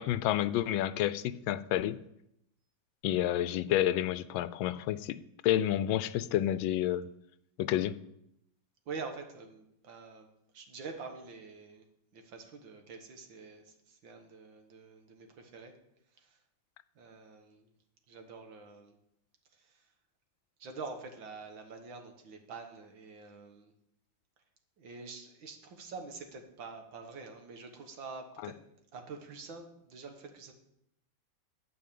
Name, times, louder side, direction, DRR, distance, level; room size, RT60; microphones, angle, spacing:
voice 1, 0.0-2.0 3.0-5.2 5.4-7.1 7.6-8.0, left 12 dB, 85° left, 15 dB, 1.3 m, -29 dB
voice 2, 8.9-10.3 10.5-11.8 12.1-15.8 16.1-16.4 17.0-17.7 18.1-19.0 19.5-19.9 20.6-23.7 24.8-28.6 28.9-30.5, right 4 dB, 75° right, 5 dB, 2.1 m, -46 dB
11.5 x 4.9 x 8.6 m, 0.79 s
omnidirectional pair, 2.1 m